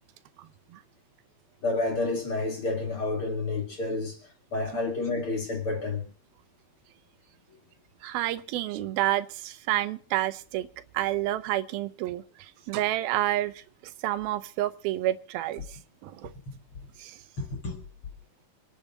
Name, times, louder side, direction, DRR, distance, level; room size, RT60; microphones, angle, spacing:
voice 1, 0.4-0.8 8.0-10.7 10.9-16.3 17.0-17.2, right 14 dB, 85° right, 2.7 m, -30 dB
voice 2, 1.6-4.2 4.5-6.1 17.4-17.8, left 2 dB, 45° left, 2.4 m, -29 dB
25.5 x 8.9 x 4.0 m
omnidirectional pair, 4.2 m